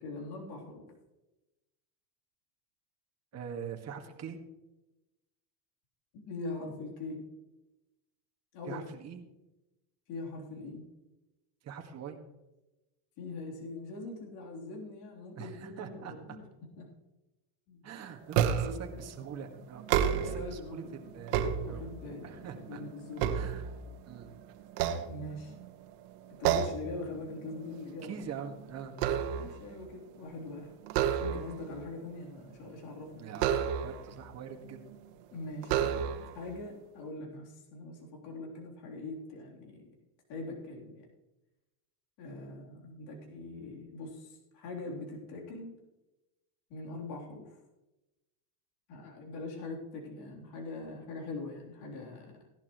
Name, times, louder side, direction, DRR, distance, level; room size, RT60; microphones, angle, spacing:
voice 1, 0.0-0.9 6.1-7.3 8.5-8.8 10.1-10.8 13.2-16.4 16.8-16.9 17.7-17.8 18.3-19.0 20.2-20.8 21.3-23.5 25.1-25.5 26.4-28.1 29.3-30.7 31.1-33.3 35.3-36.0 36.3-40.0 40.3-41.1 42.2-45.8 46.7-47.6 48.9-52.4, left 2 dB, 55° left, -2 dB, 3.6 m, -42 dB
voice 2, 3.3-4.4 8.7-9.2 11.6-12.2 15.3-16.4 17.8-21.4 21.7-21.9 22.2-22.8 23.3-23.7 24.1-24.3 28.0-28.9 33.2-34.8 35.9-36.0, right 7 dB, 35° right, 3 dB, 1.8 m, -43 dB
sound 1, 18.3-18.9 19.8-20.5 21.1-22.2 22.7-24.2 24.7-25.7 26.4-26.9 27.3-27.6 27.9-29.7 30.9-31.7 33.4-34.1 34.9-35.0 35.6-36.4, right 9 dB, 75° right, 1.4 m, -30 dB
17.0 x 11.5 x 3.1 m, 1.0 s
supercardioid pair, 130°, 48 cm